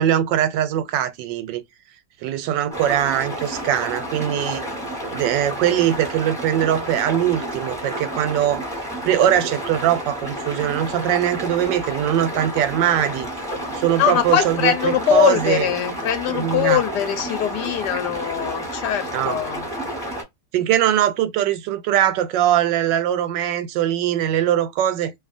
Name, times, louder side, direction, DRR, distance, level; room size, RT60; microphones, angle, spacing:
voice 1, 0.0-1.6 2.2-4.7 5.1-8.7 9.0-13.3 13.7-15.7 16.3-16.8 19.1-19.4 20.5-25.1, right 11 dB, 90° right, 1.2 m, -21 dB
sound 1, 2.7-20.2, equal, ahead, 1.0 m, -30 dB
voice 2, 14.0-19.7, left 10 dB, 75° left, 1.1 m, -22 dB
2.6 x 2.5 x 2.4 m
omnidirectional pair, 1.9 m